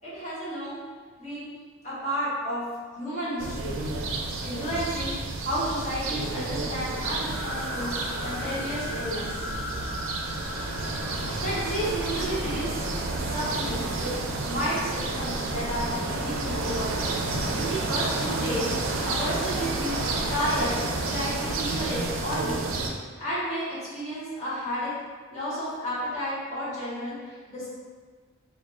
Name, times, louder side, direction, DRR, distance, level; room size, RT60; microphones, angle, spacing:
voice 1, 0.0-0.8 1.2-1.5 1.8-2.6 2.9-3.8 4.4-5.1 5.4-9.3 11.4-12.9 13.3-17.0 17.5-20.0 20.3-22.6 23.2-24.9 25.3-27.7, equal, 30° left, -11 dB, 1.4 m, -32 dB
sound 1, 3.4-22.9, right 2 dB, 65° right, 0.4 m, -30 dB
sound 2, 7.3-13.1, left 1 dB, 10° right, 1.1 m, -38 dB
3.6 x 2.2 x 3.6 m, 1.5 s
head